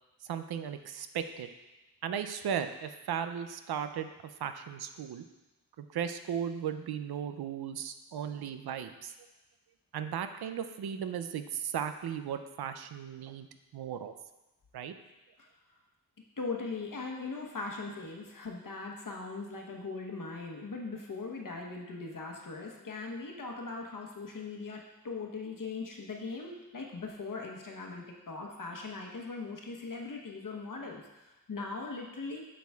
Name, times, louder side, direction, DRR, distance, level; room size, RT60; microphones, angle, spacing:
voice 1, 0.2-1.5 2.0-4.1 4.4-5.2 5.8-9.1 9.9-13.5 13.7-14.1 14.7-14.9, right 8 dB, 80° right, 9 dB, 0.5 m, -36 dB
voice 2, 16.4-32.4, left 3 dB, 55° left, 0 dB, 1.0 m, -40 dB
6.8 x 6.2 x 2.3 m, 1.0 s
wide cardioid pair, 80°, 38 cm